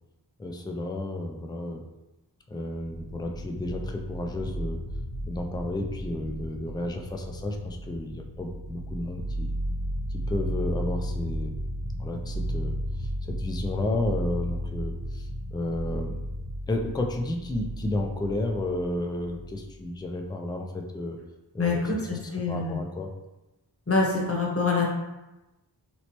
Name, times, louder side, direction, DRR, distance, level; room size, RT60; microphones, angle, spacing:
voice 1, 0.4-1.8 2.5-4.8 5.2-9.5 10.1-11.5 12.0-12.7 13.0-16.2 16.7-21.2 21.5-22.2 22.5-23.1, left 1 dB, 10° left, 2 dB, 0.4 m, -32 dB
sound 1, 2.9-20.0, equal, 85° left, 1.0 m, -34 dB
voice 2, 21.6-22.8 23.9-24.9, left 4 dB, 30° left, -2 dB, 0.9 m, -25 dB
3.1 x 3.0 x 2.9 m, 1.0 s
wide cardioid pair, 45°, 43 cm